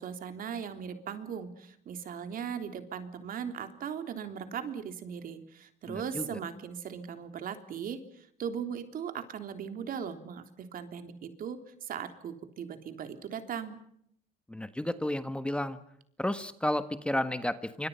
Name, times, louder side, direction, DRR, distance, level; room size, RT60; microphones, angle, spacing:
voice 1, 0.0-13.8, right 7 dB, 55° right, 7 dB, 3.5 m, -38 dB
voice 2, 5.9-6.4 14.5-15.8 16.2-17.9, left 1 dB, 5° left, 11 dB, 1.4 m, -32 dB
27.5 x 25.0 x 5.7 m, 0.71 s
cardioid pair, 110°, 17 cm